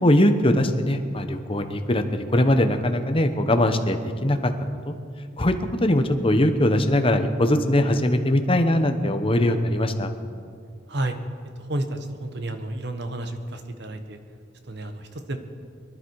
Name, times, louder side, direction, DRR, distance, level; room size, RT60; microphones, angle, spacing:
voice 1, 0.0-4.5 4.9-5.0 5.4-10.1, left 1 dB, 30° left, 7 dB, 1.0 m, -21 dB
voice 2, 11.6-14.2 14.7-15.4, right 1 dB, 60° right, 7 dB, 1.3 m, -31 dB
24.0 x 11.5 x 4.8 m, 2.2 s
head